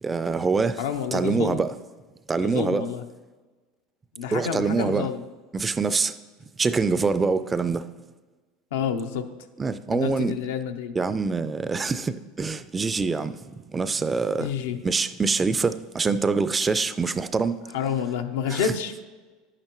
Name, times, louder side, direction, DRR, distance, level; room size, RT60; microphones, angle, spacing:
voice 1, 0.0-0.8 1.1-1.7 2.3-2.9 4.3-5.1 5.5-6.1 6.6-7.9 9.6-10.3 11.0-14.5 14.8-17.6 18.5-18.7, right 4 dB, 20° right, 0.3 m, -25 dB
voice 2, 0.8-1.6 2.4-3.0 4.2-5.2 8.7-9.2 9.9-10.9 14.4-14.8 17.7-18.9, left 7 dB, 85° left, 0.7 m, -28 dB
10.5 x 8.8 x 3.0 m
supercardioid pair, 120°, 0 cm